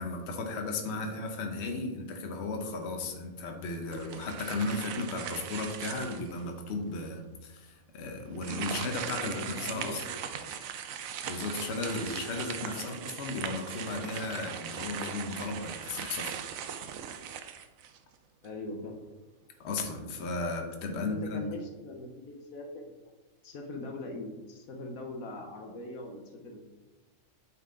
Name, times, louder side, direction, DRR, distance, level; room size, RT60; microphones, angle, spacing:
voice 1, 0.0-10.0 11.2-16.3 19.6-21.4, left 3 dB, 55° left, 3 dB, 1.1 m, -35 dB
sound 1, 3.9-6.4 7.0-7.1 8.3-18.1, right 8 dB, 80° right, 1.0 m, -39 dB
voice 2, 9.1-10.9 12.7-13.0 18.4-19.0 20.9-22.9 23.4-26.6, left 2 dB, 90° left, 2 dB, 1.4 m, -42 dB
8.7 x 4.5 x 3.8 m, 1.2 s
omnidirectional pair, 1.4 m